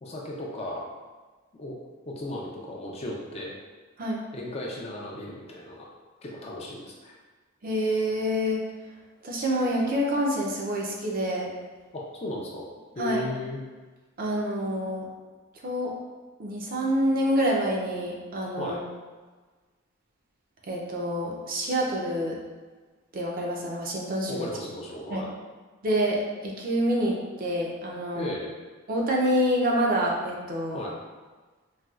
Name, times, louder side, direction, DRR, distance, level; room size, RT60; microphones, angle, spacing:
voice 1, 0.0-0.9 1.5-1.8 2.1-3.5 4.3-5.9 6.2-7.2 11.9-12.7 12.9-13.6 18.6-18.8 24.3-25.3 28.1-28.5 30.7-31.0, left 1 dB, 30° left, -2 dB, 0.4 m, -35 dB
voice 2, 7.6-8.6 9.2-11.5 13.0-13.2 14.2-15.1 15.6-15.9 16.4-18.8 20.7-22.4 23.1-24.5 25.1-25.2 25.8-28.3 28.9-30.8, equal, 40° right, -2 dB, 0.5 m, -27 dB
4.0 x 2.2 x 2.3 m, 1.4 s
head